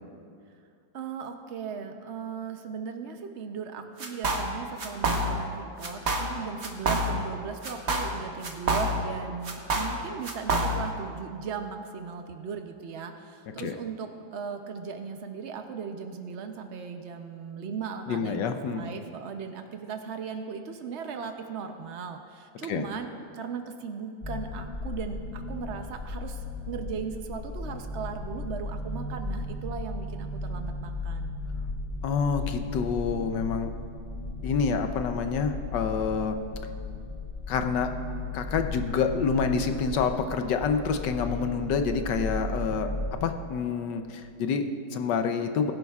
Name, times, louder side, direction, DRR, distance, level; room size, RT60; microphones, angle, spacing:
voice 1, 0.9-31.4, right 6 dB, 85° right, 5 dB, 0.6 m, -37 dB
sound 1, 4.0-4.5 4.8-5.5 5.8-6.3 6.6-7.3 7.6-9.2 9.4-11.0, right 1 dB, 40° right, 1.2 m, -27 dB
voice 2, 18.1-18.9 22.7-22.8 32.0-33.7 34.4-36.4 37.5-37.9 38.3-45.7, left 5 dB, 70° left, 7 dB, 1.3 m, -27 dB
sound 2, 24.2-43.1, left 2 dB, 35° left, 1.5 m, -36 dB
22.0 x 10.5 x 2.4 m, 2.4 s
omnidirectional pair, 2.1 m